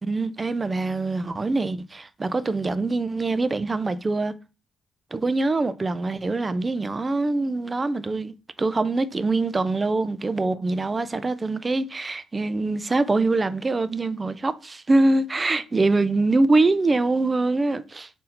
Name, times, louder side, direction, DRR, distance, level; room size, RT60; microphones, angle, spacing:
voice 1, 0.0-4.3 5.1-18.1, right 2 dB, 25° right, 0.3 m, -24 dB
3.8 x 2.7 x 4.1 m
cardioid pair, 90°, 0 cm